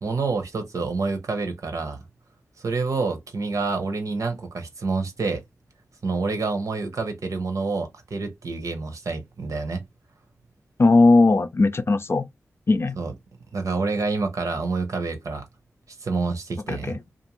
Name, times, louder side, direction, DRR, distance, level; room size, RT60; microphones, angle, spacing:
voice 1, 0.0-2.0 2.6-5.4 6.0-9.8 13.0-13.1 13.5-15.4 16.0-16.9, right 3 dB, 70° right, 0.7 m, -27 dB
voice 2, 10.8-12.3 12.7-13.0 16.7-17.0, left 3 dB, 45° left, 0.4 m, -18 dB
2.5 x 2.4 x 2.9 m
cardioid pair, 45°, 6 cm